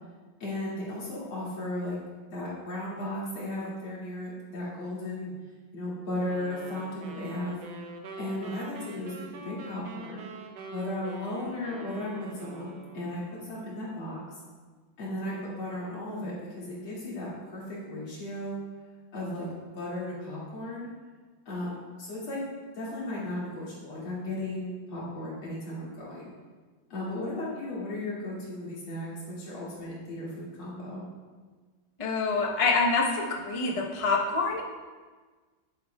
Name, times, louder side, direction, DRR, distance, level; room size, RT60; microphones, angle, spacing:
voice 1, 0.4-2.0 2.3-5.3 5.7-7.6 8.2-10.3 10.7-14.4 15.0-18.6 19.1-19.5 19.7-20.9 21.5-22.5 22.7-26.3 26.9-31.1, left 1 dB, 90° left, -7 dB, 3.3 m, -35 dB
sound 1, 6.3-13.4, right 2 dB, 65° right, 1.3 m, -44 dB
voice 2, 32.0-34.6, left 4 dB, 35° left, 0 dB, 0.5 m, -26 dB
10.5 x 8.8 x 2.3 m, 1.4 s
omnidirectional pair, 2.2 m